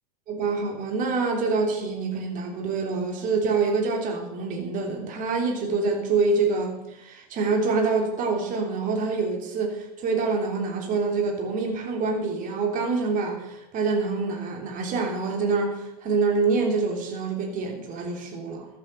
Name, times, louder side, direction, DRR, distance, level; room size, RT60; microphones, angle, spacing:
voice 1, 0.3-18.7, right 4 dB, 40° right, 2 dB, 3.3 m, -26 dB
14.5 x 8.4 x 6.7 m, 0.95 s
hypercardioid pair, 105°, 21 cm